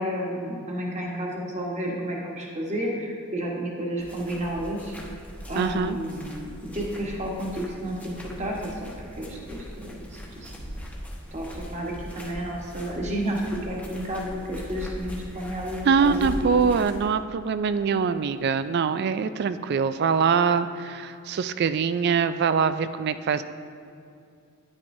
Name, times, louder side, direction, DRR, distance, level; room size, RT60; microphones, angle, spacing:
voice 1, 0.0-4.9 5.5-10.8 11.3-16.3, equal, 30° right, -1 dB, 1.2 m, -31 dB
sound 1, 4.0-17.1, equal, 5° left, 0.9 m, -40 dB
voice 2, 5.6-6.0 15.8-23.4, right 6 dB, 50° right, 12 dB, 0.3 m, -23 dB
9.8 x 9.7 x 2.7 m, 2.5 s
head